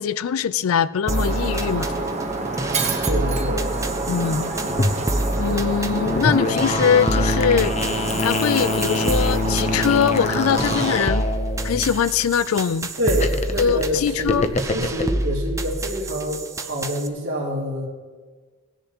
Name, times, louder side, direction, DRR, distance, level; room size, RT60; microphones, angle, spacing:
voice 1, 0.0-1.9 4.1-4.5 5.4-7.7 8.2-11.3 11.6-12.9 13.6-14.5, left 7 dB, 85° left, 0.4 m, -22 dB
sound 1, 1.1-17.1, right 1 dB, 15° right, 0.5 m, -28 dB
Shatter, 1.1-11.0, right 2 dB, 30° right, 0.9 m, -27 dB
voice 2, 3.0-3.7 5.9-6.1 13.0-17.9, equal, 60° right, 2.4 m, -26 dB
sound 2, 4.7-12.3 13.0-15.0, left 3 dB, 30° left, 0.6 m, -26 dB
18.0 x 10.0 x 2.9 m
head